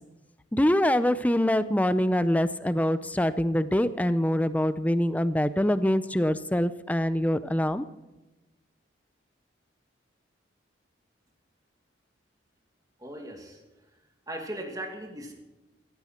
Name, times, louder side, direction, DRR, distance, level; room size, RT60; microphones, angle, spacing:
voice 1, 0.5-7.8, left 1 dB, 10° left, 14 dB, 0.5 m, -24 dB
voice 2, 13.0-13.6 14.3-15.3, right 1 dB, 20° right, 3 dB, 2.3 m, -38 dB
15.5 x 15.0 x 4.4 m, 1.0 s
head